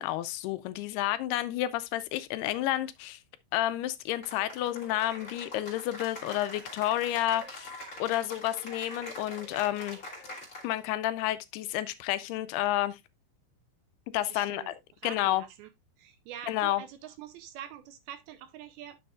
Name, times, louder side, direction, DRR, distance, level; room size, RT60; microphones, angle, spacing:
voice 1, 0.0-3.2 3.5-7.7 8.0-10.0 10.6-13.0 14.1-14.7 15.0-15.4 16.5-16.8, left 14 dB, 85° left, 2.5 m, -30 dB
Cheering / Applause, 4.2-10.9, left 1 dB, 20° left, 2.9 m, -44 dB
voice 2, 14.3-14.8 15.0-15.7 16.0-19.0, right 10 dB, 80° right, 2.4 m, -45 dB
10.0 x 6.3 x 2.4 m
omnidirectional pair, 4.8 m